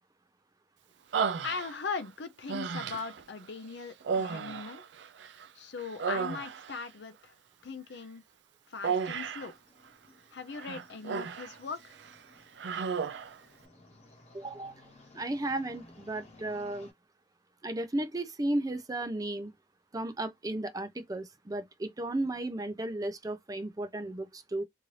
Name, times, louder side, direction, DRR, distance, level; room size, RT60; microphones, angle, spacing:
Human voice, 1.1-2.0 2.5-3.2 4.0-5.5 5.8-6.8 8.8-9.5 10.5-11.6 11.9-12.1 12.6-13.4, right 6 dB, 75° right, 0.4 m, -33 dB
voice 1, 1.4-4.8 5.5-7.3 7.6-8.2 8.7-9.5 10.3-12.0, left 5 dB, 70° left, 0.6 m, -39 dB
sound 1, 9.2-16.9, left 2 dB, 40° left, 1.1 m, -58 dB
voice 2, 14.3-14.7 15.1-16.9 17.6-19.5 19.9-24.6, right 1 dB, 20° right, 0.5 m, -34 dB
2.7 x 2.6 x 3.1 m
head